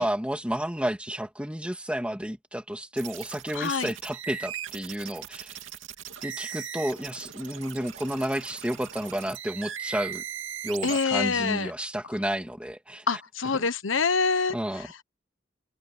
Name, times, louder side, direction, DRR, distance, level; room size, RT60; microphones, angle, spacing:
voice 1, 0.0-5.6 6.2-10.2 10.6-13.2 13.6-13.7 14.5-14.9, equal, 5° right, 2.8 m, -31 dB
sound 1, 3.0-11.0, right 9 dB, 80° right, 2.6 m, -39 dB
voice 2, 3.5-3.9 10.8-11.7 13.1-14.8, left 5 dB, 85° left, 1.2 m, -26 dB
head